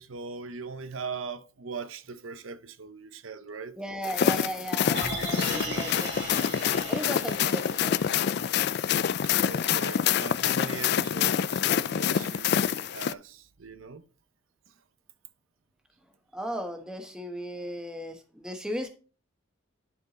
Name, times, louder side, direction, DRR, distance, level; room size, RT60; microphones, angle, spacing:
voice 1, 0.0-3.8 9.2-14.0 14.7-14.8, right 5 dB, 80° right, 0.8 m, -40 dB
voice 2, 3.8-6.5 6.9-8.0 16.3-18.9, equal, 5° right, 1.1 m, -36 dB
sound 1, 4.0-13.1, left 8 dB, 55° left, 0.3 m, -26 dB
sound 2, 4.9-9.1 9.5-9.6, right 3 dB, 55° right, 2.6 m, -38 dB
11.0 x 4.5 x 4.1 m
head